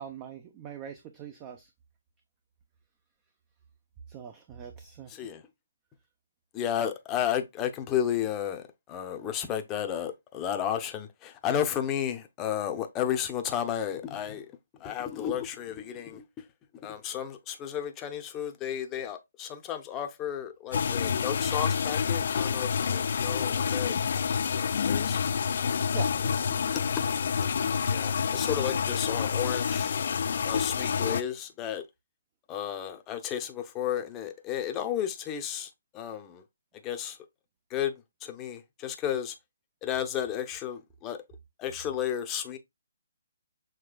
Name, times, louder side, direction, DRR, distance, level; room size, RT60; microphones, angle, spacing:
voice 1, 0.0-1.7 4.1-5.1 25.9-26.1, right 8 dB, 25° right, 0.7 m, -42 dB
voice 2, 5.1-5.4 6.5-14.5 14.8-16.3 16.8-23.9 24.5-25.2 27.0-27.1 27.9-30.0 30.4-31.8 32.5-36.4 36.8-37.2 37.7-37.9 38.2-39.3 39.8-41.2 41.6-42.6, left 10 dB, 20° left, 0.8 m, -33 dB
sound 1, 20.7-31.2, left 6 dB, 55° left, 0.4 m, -28 dB
6.7 x 3.1 x 2.3 m
figure-of-eight pair, 145°, 0 cm